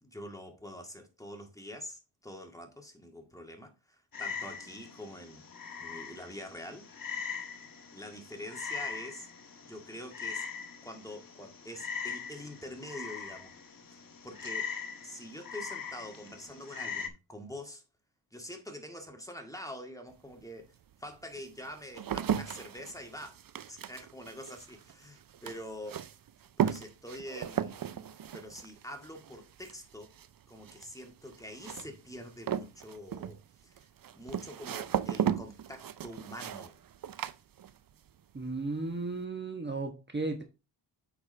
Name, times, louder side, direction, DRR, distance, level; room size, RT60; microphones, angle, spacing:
voice 1, 0.0-5.4 5.8-7.2 7.9-9.3 9.6-10.5 10.8-13.5 13.9-14.7 15.0-17.8 18.3-20.7 21.0-26.1 26.6-30.1 30.5-33.8 34.1-36.8, equal, 5° left, 1.9 m, -45 dB
Frog, 4.1-17.1, left 6 dB, 50° left, 1.4 m, -41 dB
sound 1, 20.1-20.2 20.9-38.1 38.4-38.9, right 9 dB, 50° right, 0.7 m, -36 dB
voice 2, 38.3-40.4, right 3 dB, 25° right, 1.3 m, -35 dB
8.5 x 4.8 x 3.4 m
cardioid pair, 75°, 45 cm